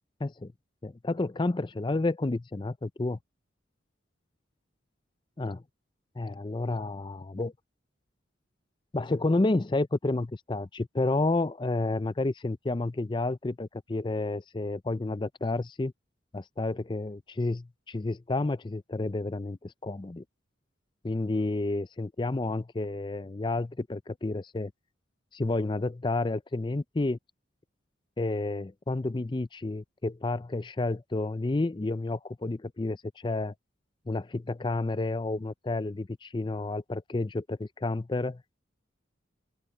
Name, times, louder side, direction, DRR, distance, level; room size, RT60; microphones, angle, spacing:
voice 1, 0.2-0.5 0.8-3.2 5.4-5.6 6.2-7.5 8.9-15.9 16.3-20.2 21.0-24.7 25.3-27.2 28.2-33.5 34.1-38.4, left 2 dB, 25° left, 0.4 m, -30 dB
open air
head